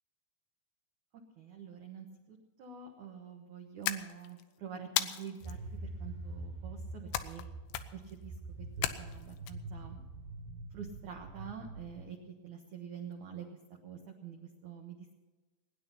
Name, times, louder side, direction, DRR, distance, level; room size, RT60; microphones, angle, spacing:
voice 1, 1.4-7.4 7.9-8.3 8.8-10.0 10.7-12.2 12.4-13.5 13.8-15.2, right 7 dB, 80° right, 1 dB, 1.7 m, -46 dB
sound 1, 3.8-4.4 5.0-5.6 7.1-7.5 7.7-8.1 8.8-9.5, left 13 dB, 85° left, 3.1 m, -35 dB
sound 2, 5.4-12.1, right 2 dB, 65° right, 3.4 m, -45 dB
20.0 x 10.0 x 5.6 m, 1.2 s
omnidirectional pair, 5.5 m